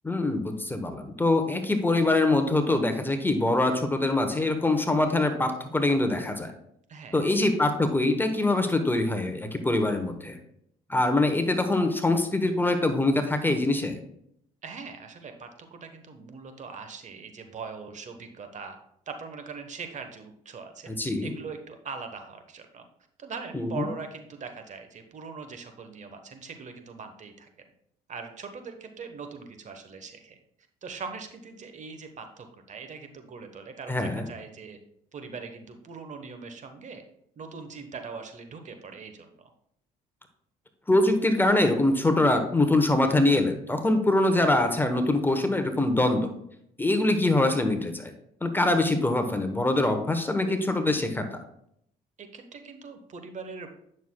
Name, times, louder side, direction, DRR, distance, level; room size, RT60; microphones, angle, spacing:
voice 1, 0.0-6.5 7.1-10.4 10.9-14.0 20.9-21.3 23.5-23.9 33.9-34.3 40.9-46.3 46.8-48.1 48.4-51.4, left 2 dB, 10° left, 7 dB, 0.9 m, -24 dB
voice 2, 14.6-18.8 19.1-20.9 21.2-22.8 23.2-27.5 28.1-30.4 30.8-34.8 35.1-37.0 37.4-39.3 52.2-53.7, right 5 dB, 45° right, 7 dB, 1.1 m, -41 dB
9.1 x 6.4 x 2.2 m, 0.72 s
supercardioid pair, 75°, 17 cm